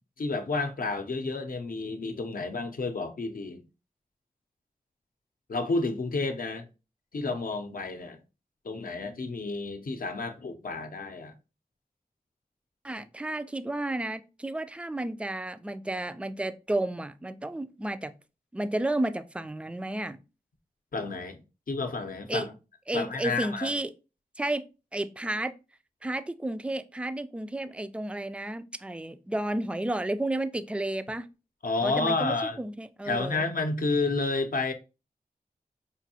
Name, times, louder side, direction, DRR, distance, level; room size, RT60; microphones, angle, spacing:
voice 1, 0.2-3.6 5.5-6.7 7.1-8.2 8.6-11.3 20.9-21.4 21.7-22.5 22.9-23.7 31.6-32.6 33.0-34.7, left 3 dB, 65° left, 0.6 m, -30 dB
voice 2, 12.8-18.1 18.5-20.2 22.3-22.5 22.9-23.9 24.4-24.6 24.9-25.5 26.0-31.3 31.8-33.4, right 1 dB, 5° right, 0.3 m, -32 dB
4.9 x 2.6 x 2.7 m
wide cardioid pair, 65°, 16 cm